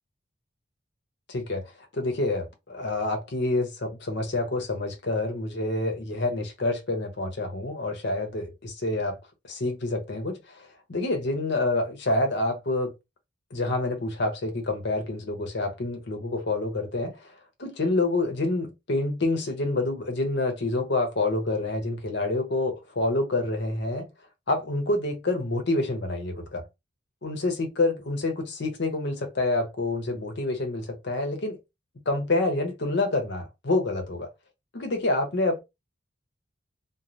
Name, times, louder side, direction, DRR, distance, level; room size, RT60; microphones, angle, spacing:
voice 1, 1.3-9.2 9.4-12.9 13.5-17.3 17.6-24.1 24.5-26.6 27.2-31.6 32.1-34.3 34.7-35.6, left 2 dB, 60° left, 0.8 m, -27 dB
3.0 x 2.0 x 2.5 m
head